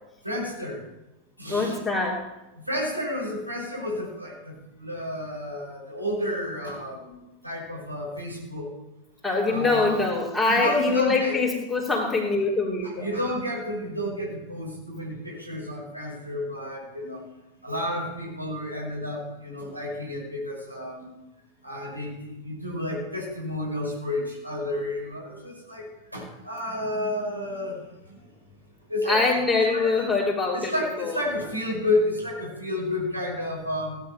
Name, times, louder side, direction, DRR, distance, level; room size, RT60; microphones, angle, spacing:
voice 1, 0.2-0.8 1.4-1.8 2.7-8.7 9.5-10.0 10.5-11.4 12.8-17.2 17.6-21.1 21.6-25.9 26.1-28.2 28.9-29.2 29.6-30.0 30.5-34.0, left 1 dB, 90° right, -3 dB, 5.6 m, -31 dB
voice 2, 1.5-2.2 9.2-13.1 29.1-30.7 31.0-31.2, left 3 dB, 10° left, -5 dB, 3.5 m, -24 dB
17.5 x 10.5 x 6.1 m, 0.93 s
figure-of-eight pair, 90°, 0 cm